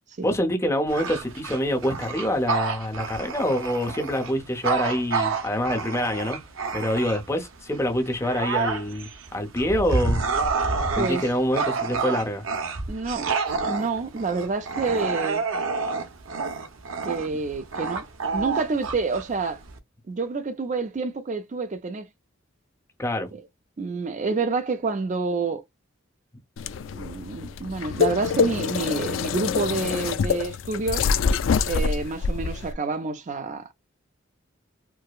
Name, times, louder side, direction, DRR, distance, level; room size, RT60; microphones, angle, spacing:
voice 1, 0.2-6.4 6.7-10.2 11.0-12.4 23.0-23.3, equal, 15° left, 0.6 m, -26 dB
Bark / Growling, 0.9-7.4 7.9-19.8, right 4 dB, 80° right, 0.8 m, -28 dB
voice 2, 11.0-11.3 12.9-13.3 13.7-15.4 17.0-18.0 18.3-19.6 20.1-22.1 23.3-23.4 23.8-25.6 26.9-31.1 31.7-33.7, right 4 dB, 40° right, 0.4 m, -28 dB
sound 1, 26.6-32.7, left 6 dB, 70° left, 0.3 m, -25 dB
4.6 x 2.0 x 2.3 m
head